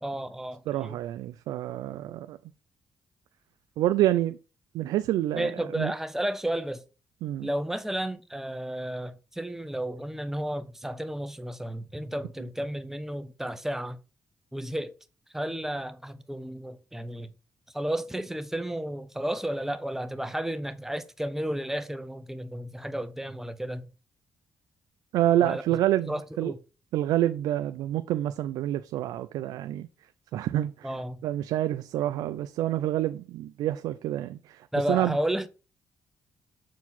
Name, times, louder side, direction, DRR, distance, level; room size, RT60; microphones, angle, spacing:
voice 1, 0.0-1.0 5.3-6.8 7.4-14.0 14.5-14.9 15.3-17.3 17.7-23.9 25.4-25.6 26.0-26.6 30.8-31.2 34.7-35.5, right 1 dB, 5° right, 0.9 m, -32 dB
voice 2, 0.7-2.4 3.8-4.4 4.7-5.9 7.2-7.5 25.1-26.5 26.9-29.9 30.3-30.9 31.2-35.2, right 13 dB, 85° right, 0.4 m, -27 dB
7.0 x 4.6 x 4.1 m
cardioid pair, 75°, 6 cm